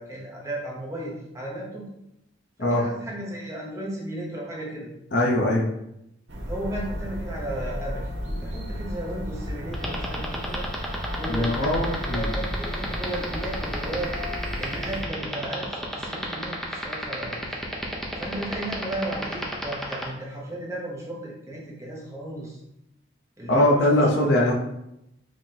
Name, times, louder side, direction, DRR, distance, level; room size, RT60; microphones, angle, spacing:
voice 1, 0.0-1.9 2.6-4.9 6.5-10.7 11.1-11.8 12.1-14.1 14.6-17.5 18.2-22.6 23.4-24.5, right 1 dB, 15° right, -4 dB, 0.9 m, -35 dB
voice 2, 5.1-5.7 11.3-12.3 23.5-24.5, left 1 dB, 55° left, -2 dB, 0.9 m, -21 dB
sound 1, 6.3-15.0, equal, 55° right, 0.8 m, -33 dB
sound 2, 9.7-20.0, equal, ahead, 0.5 m, -31 dB
5.1 x 3.6 x 2.8 m, 0.84 s
head